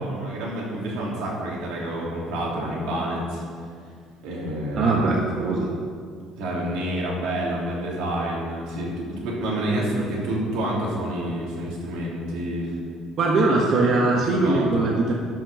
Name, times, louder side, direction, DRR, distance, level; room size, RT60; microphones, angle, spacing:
voice 1, 0.0-3.4 4.2-5.1 6.4-12.7 14.3-14.7, right 1 dB, 85° right, -4 dB, 3.3 m, -28 dB
voice 2, 4.8-5.7 13.2-15.1, right 3 dB, 40° right, -2 dB, 1.3 m, -21 dB
12.0 x 6.3 x 6.9 m, 2.1 s
cardioid pair, 160°, 0 cm